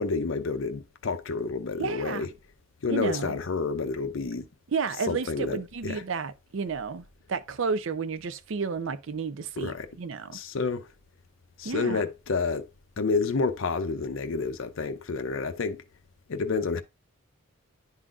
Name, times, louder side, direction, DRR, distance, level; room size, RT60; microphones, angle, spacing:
voice 1, 0.0-2.3 2.8-4.5 5.0-6.0 9.6-9.9 10.3-10.9 11.6-12.7 13.0-15.8 16.3-16.8, left 4 dB, 65° left, 0.5 m, -29 dB
voice 2, 1.8-2.3 2.9-3.4 4.7-10.4 11.6-12.0, right 5 dB, 65° right, 0.5 m, -32 dB
11.0 x 3.8 x 2.4 m
head